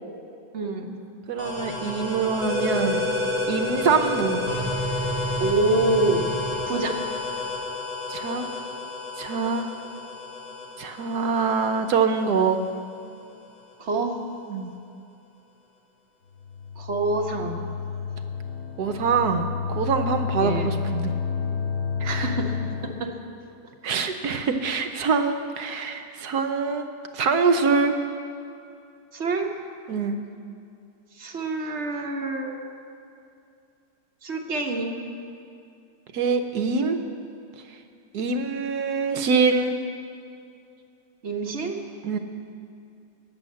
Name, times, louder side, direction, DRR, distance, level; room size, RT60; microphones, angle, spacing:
voice 1, 0.5-0.9 5.4-6.3 6.7-7.0 13.8-14.2 16.7-17.6 20.4-20.8 22.0-23.2 29.1-29.5 31.1-32.6 34.2-35.0 41.2-41.8, right 2 dB, 40° right, 1 dB, 1.5 m, -26 dB
voice 2, 1.3-3.0 3.5-4.4 8.1-8.5 9.2-9.7 10.8-12.6 14.5-14.7 18.8-21.1 22.0-22.3 23.8-26.9 27.1-27.9 29.9-30.2 36.1-37.0 38.1-39.8 42.0-42.2, right 5 dB, 70° right, 7 dB, 1.3 m, -24 dB
sound 1, 1.4-12.8, left 2 dB, 90° left, 3.7 m, -30 dB
sound 2, 16.4-23.2, left 6 dB, 70° left, 2.1 m, -30 dB
19.0 x 7.1 x 7.5 m, 2.5 s
omnidirectional pair, 1.9 m